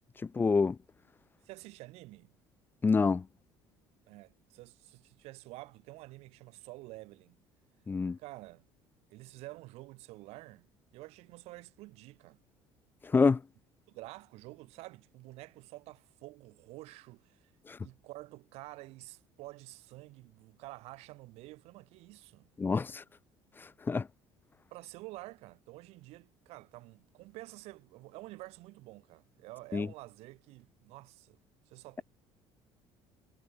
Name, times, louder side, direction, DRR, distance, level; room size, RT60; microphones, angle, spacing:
voice 1, 0.4-0.8 2.8-3.2 7.9-8.2 13.1-13.4 22.6-23.0 23.9-24.1 29.7-29.9, left 4 dB, 20° left, 0.5 m, -26 dB
voice 2, 1.4-2.3 4.1-7.4 8.2-8.7 9.1-10.7 10.9-12.4 13.9-17.5 17.8-22.5 24.7-31.4 31.7-32.0, right 20 dB, 75° right, 5.3 m, -49 dB
supercardioid pair, 100°, 11 cm